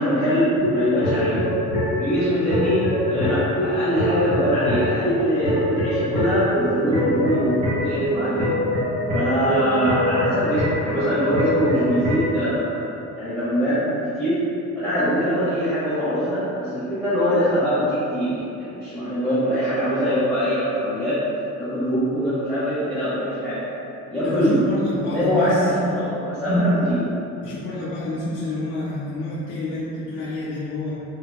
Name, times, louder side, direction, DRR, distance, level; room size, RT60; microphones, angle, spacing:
voice 1, 0.0-1.4 2.0-8.5 9.1-12.8 13.1-14.4 14.8-18.3 18.6-21.2 21.6-23.6 24.1-24.7 25.1-27.1, equal, 5° left, -14 dB, 0.7 m, -23 dB
sound 1, 0.6-12.4, equal, 25° right, 1.3 m, -24 dB
voice 2, 24.2-25.7 27.4-30.9, left 2 dB, 40° left, -8 dB, 0.5 m, -28 dB
3.4 x 2.8 x 2.2 m, 2.8 s
cardioid pair, 140°, 30 cm